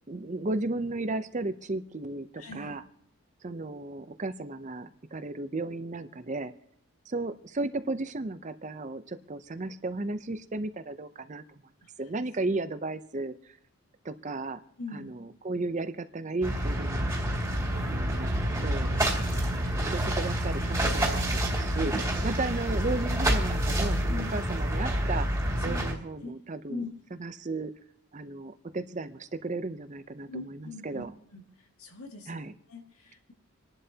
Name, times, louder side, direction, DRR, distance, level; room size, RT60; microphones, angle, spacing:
voice 1, 0.1-2.8 3.4-6.5 7.1-11.4 12.0-13.6 14.0-14.6 14.9-17.1 17.7-25.3 25.6-26.9 27.2-27.7 28.1-31.1 32.3-32.5, right 2 dB, 35° right, 11 dB, 0.6 m, -34 dB
voice 2, 2.4-2.8 14.8-15.1 21.8-21.9 22.2-22.4 24.1-24.4 25.6-25.9 26.2-26.3 26.7-26.9 30.3-31.0 31.3-31.4 31.8-32.4 32.7-33.3, left 3 dB, 80° left, 2 dB, 1.9 m, -40 dB
sound 1, 16.4-25.9, right 1 dB, 15° right, 2.2 m, -28 dB
27.5 x 11.0 x 2.8 m, 0.73 s
head